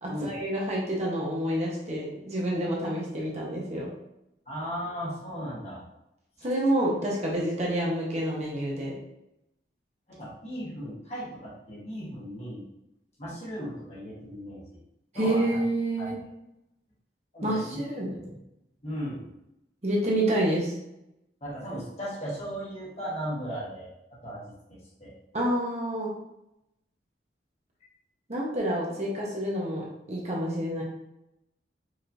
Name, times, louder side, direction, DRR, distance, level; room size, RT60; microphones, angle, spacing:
voice 1, 0.0-3.9 6.4-8.9 15.1-16.2 17.4-18.1 19.8-20.7 25.3-26.1 28.3-30.8, right 1 dB, 40° right, -4 dB, 1.0 m, -28 dB
voice 2, 4.5-5.8 10.1-12.6 13.2-14.6 15.1-15.6 16.0-16.2 17.3-17.8 18.2-18.3 18.8-19.2 21.4-23.9 24.2-24.4 24.7-25.1, equal, 40° left, -6 dB, 1.3 m, -36 dB
4.8 x 3.1 x 2.6 m, 0.86 s
head